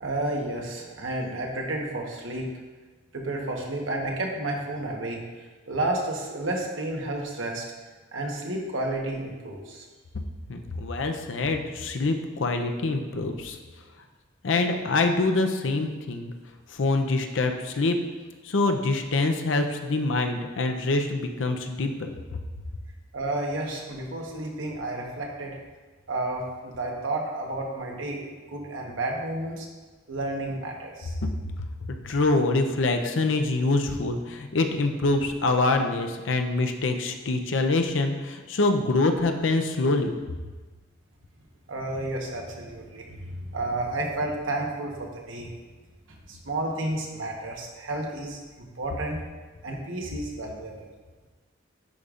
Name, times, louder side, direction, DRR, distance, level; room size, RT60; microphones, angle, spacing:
voice 1, 0.0-2.5 3.1-5.2 5.7-7.6 8.1-9.8 23.1-25.6 26.1-29.7 30.1-31.1 41.7-45.5 46.1-49.2 49.6-50.9, right 2 dB, 75° right, 0 dB, 1.1 m, -31 dB
voice 2, 10.5-13.6 14.4-16.3 16.7-18.0 18.4-22.1 31.2-31.3 31.8-40.1, left 2 dB, 70° left, 5 dB, 0.6 m, -25 dB
10.5 x 5.1 x 2.5 m, 1.3 s
head